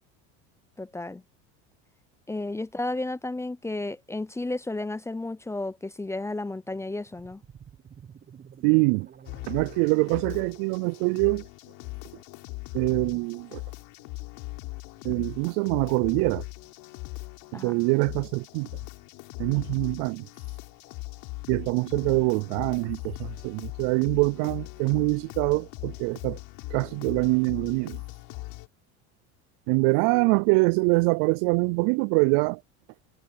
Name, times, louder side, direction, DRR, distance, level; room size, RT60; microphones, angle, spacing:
voice 1, 0.8-1.2 2.3-7.4 17.5-17.7 29.8-30.3, left 2 dB, 10° left, 0.6 m, -33 dB
sound 1, 6.6-9.9, right 8 dB, 30° right, 1.6 m, -50 dB
voice 2, 8.6-9.1 9.5-11.4 12.7-13.6 15.0-16.4 17.5-18.7 19.4-20.3 21.5-26.4 26.7-28.0 29.7-32.6, right 29 dB, 70° right, 0.5 m, -24 dB
sound 2, 9.2-28.7, left 24 dB, 70° left, 5.4 m, -40 dB
supercardioid pair, 120°, 35 cm